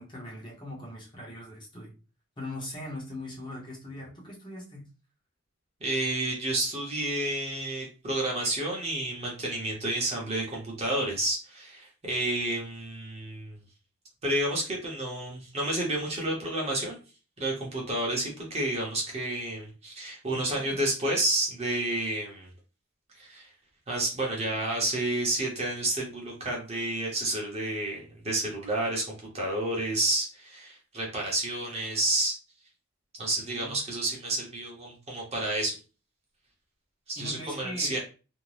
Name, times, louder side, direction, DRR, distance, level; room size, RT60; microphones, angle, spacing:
voice 1, 0.0-1.9 2.4-4.9 20.3-20.8 33.4-33.8 37.2-38.0, left 1 dB, 20° left, 0.8 m, -41 dB
voice 2, 5.8-13.6 14.2-17.0 17.4-22.5 23.1-23.5 23.9-32.3 33.2-35.8 37.1-38.0, right 1 dB, 30° right, 0.7 m, -30 dB
2.6 x 2.1 x 3.2 m
head